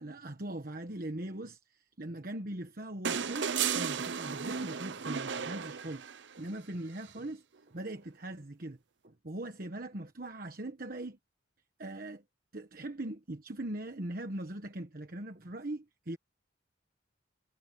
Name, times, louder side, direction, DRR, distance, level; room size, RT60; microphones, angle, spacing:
voice 1, 0.0-6.0 6.4-8.8 9.0-11.2 11.8-12.2 12.5-16.2, right 1 dB, 50° right, 1.2 m, -41 dB
sound 1, 3.1-6.4 7.9-8.0, right 7 dB, 70° right, 0.7 m, -34 dB
head